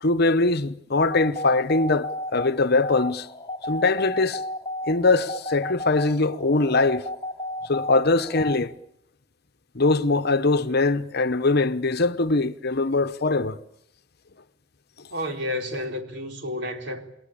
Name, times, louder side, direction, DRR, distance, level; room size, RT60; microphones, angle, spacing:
voice 1, 0.0-3.3 3.7-4.4 4.9-7.1 7.7-8.7 9.7-13.6, left 3 dB, 55° left, 1.0 m, -22 dB
sound 1, 1.1-8.6, left 1 dB, 20° left, 3.9 m, -34 dB
voice 2, 15.1-17.0, left 1 dB, 60° right, 3.9 m, -31 dB
28.5 x 22.0 x 8.8 m
head